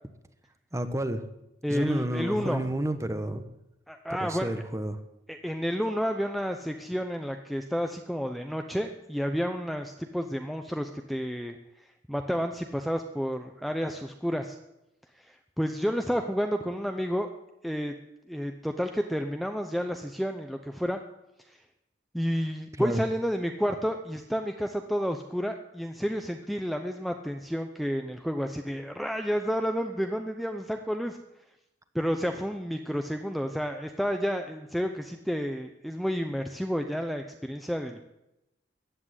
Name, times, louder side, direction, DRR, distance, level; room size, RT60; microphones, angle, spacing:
voice 1, 0.7-1.2 1.7-3.4 4.1-5.0 22.8-23.0, right 1 dB, 15° right, 9 dB, 1.1 m, -30 dB
voice 2, 1.6-2.7 3.9-4.5 5.3-11.6 12.1-14.6 15.2-17.3 17.6-17.9 18.3-21.0 21.5-21.6 22.1-31.2 31.9-38.0, equal, ahead, 5 dB, 0.7 m, -30 dB
15.0 x 8.7 x 9.9 m, 0.93 s
head